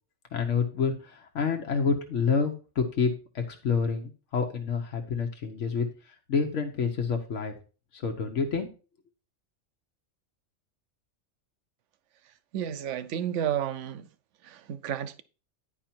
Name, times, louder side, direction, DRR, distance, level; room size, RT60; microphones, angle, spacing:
voice 1, 0.3-5.9 6.3-7.5 7.9-8.7, left 5 dB, 75° left, 1.3 m, -28 dB
voice 2, 12.5-14.1 14.4-15.2, right 9 dB, 75° right, 1.0 m, -31 dB
10.5 x 4.8 x 4.4 m
omnidirectional pair, 1.3 m